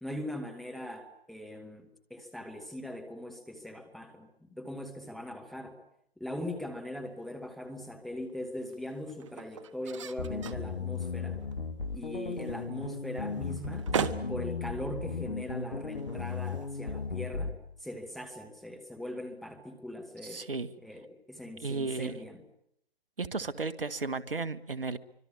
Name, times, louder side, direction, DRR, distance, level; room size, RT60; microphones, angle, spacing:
voice 1, 0.0-5.8 6.2-11.4 11.9-20.4 20.8-22.4, left 1 dB, ahead, 5 dB, 1.2 m, -40 dB
sound 1, 7.0-17.4, right 7 dB, 30° right, 1.3 m, -42 dB
sound 2, 10.2-17.6, left 4 dB, 60° left, 2.2 m, -36 dB
voice 2, 20.2-20.7 21.6-22.2 23.2-25.0, right 3 dB, 65° right, 15 dB, 1.7 m, -34 dB
25.0 x 24.5 x 8.4 m, 0.73 s
figure-of-eight pair, 140°, 30 cm